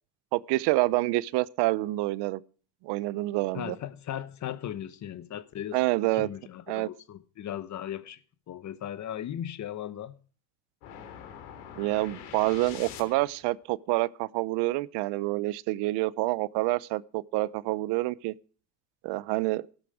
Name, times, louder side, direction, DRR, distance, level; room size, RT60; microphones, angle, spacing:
voice 1, 0.3-2.4 2.8-3.8 5.7-6.3 6.7-6.9 11.8-18.3 19.0-19.6, right 19 dB, 65° right, 0.7 m, -27 dB
voice 2, 3.5-5.8 6.1-8.2 8.5-10.2, left 10 dB, 40° left, 1.2 m, -37 dB
sound 1, 10.8-13.5, left 8 dB, 90° left, 3.5 m, -44 dB
14.0 x 12.5 x 4.9 m
supercardioid pair, 115°, 44 cm